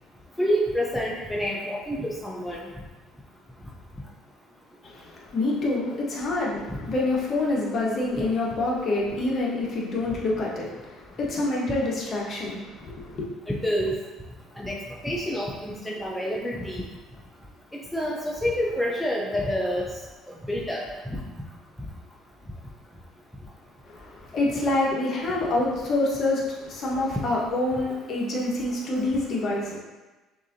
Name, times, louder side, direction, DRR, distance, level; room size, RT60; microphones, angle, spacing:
voice 1, 0.4-2.7 6.7-6.8 13.5-14.0 14.6-14.8 15.0-16.9 17.9-19.9 20.5-20.8 21.1-21.2, equal, 5° left, -3 dB, 0.6 m, -27 dB
voice 2, 4.8-13.2 23.8-29.8, left 2 dB, 45° left, -4 dB, 1.2 m, -27 dB
6.1 x 2.7 x 2.7 m, 1.2 s
supercardioid pair, 95°, 0 cm